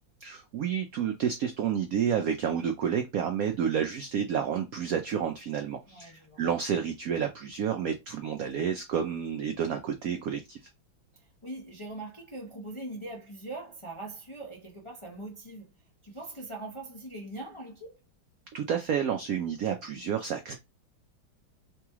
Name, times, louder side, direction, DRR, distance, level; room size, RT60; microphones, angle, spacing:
voice 1, 0.2-10.6 18.5-20.6, right 8 dB, 85° right, 0.7 m, -30 dB
voice 2, 5.9-6.4 11.1-15.7 16.0-18.0, right 2 dB, 30° left, 0.5 m, -42 dB
4.0 x 3.0 x 3.5 m
omnidirectional pair, 2.2 m